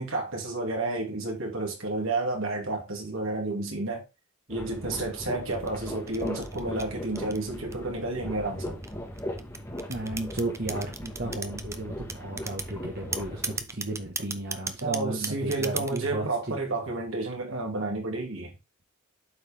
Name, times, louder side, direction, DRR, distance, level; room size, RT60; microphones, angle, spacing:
voice 1, 0.0-4.0 4.5-8.8 14.8-18.6, right 2 dB, 65° right, 2.5 m, -31 dB
sound 1, 4.5-13.6, left 1 dB, 15° left, 1.6 m, -38 dB
sound 2, 5.5-8.0 8.7-11.8 12.1-12.7 13.1-16.1, right 4 dB, 15° right, 0.5 m, -35 dB
voice 2, 9.9-16.6, right 2 dB, 45° right, 1.4 m, -34 dB
7.9 x 4.9 x 3.5 m
head